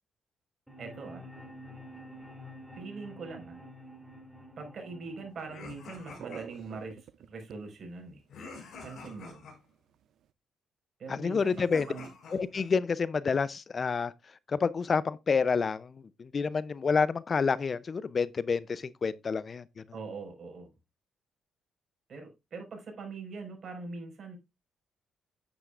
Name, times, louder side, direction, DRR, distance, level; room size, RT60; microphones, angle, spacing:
sound 1, 0.7-6.7, equal, 5° right, 3.2 m, -49 dB
voice 1, 0.8-1.2 2.8-3.6 4.6-8.2 8.8-9.5 11.0-12.1 19.9-20.7 22.1-24.4, right 4 dB, 50° right, 4.9 m, -42 dB
sound 2, 5.5-6.7 8.3-9.5 11.4-12.7, left 4 dB, 65° left, 4.9 m, -47 dB
sound 3, 5.8-9.2 9.6-10.3, right 10 dB, 70° right, 0.5 m, -48 dB
voice 2, 11.1-11.9 12.3-14.1 14.5-19.6, left 5 dB, 40° left, 0.5 m, -28 dB
9.9 x 9.1 x 2.4 m
cardioid pair, 90°, 0 cm